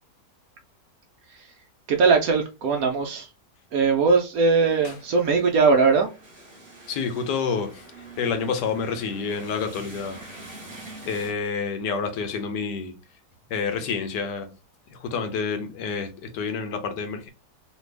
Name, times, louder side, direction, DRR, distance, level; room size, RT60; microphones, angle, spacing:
voice 1, 1.9-3.3 3.7-6.1, right 4 dB, 70° right, 0.9 m, -20 dB
sound 1, 4.7-11.3, right 2 dB, 35° right, 1.2 m, -45 dB
voice 2, 6.9-7.9 8.2-10.2 11.1-13.0 13.5-14.5 14.9-17.3, left 5 dB, 75° left, 1.2 m, -28 dB
3.3 x 2.4 x 3.2 m
omnidirectional pair, 1.9 m